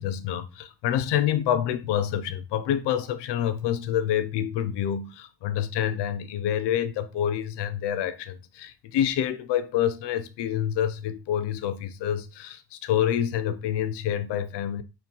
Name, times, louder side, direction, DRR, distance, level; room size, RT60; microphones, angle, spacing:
voice 1, 0.0-14.8, left 10 dB, 90° left, 0.8 m, -27 dB
4.8 x 4.7 x 5.4 m
supercardioid pair, 60°, 40 cm